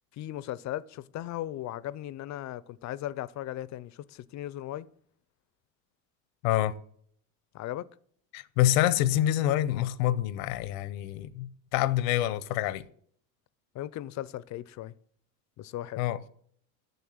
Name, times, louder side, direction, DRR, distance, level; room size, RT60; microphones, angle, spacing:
voice 1, 0.1-4.9 7.5-7.8 13.7-14.9 15.6-16.0, left 13 dB, 45° left, 0.5 m, -37 dB
voice 2, 6.4-6.8 8.3-12.8 16.0-16.2, left 13 dB, 80° left, 0.8 m, -26 dB
8.1 x 6.9 x 7.7 m
supercardioid pair, 110°, 40 cm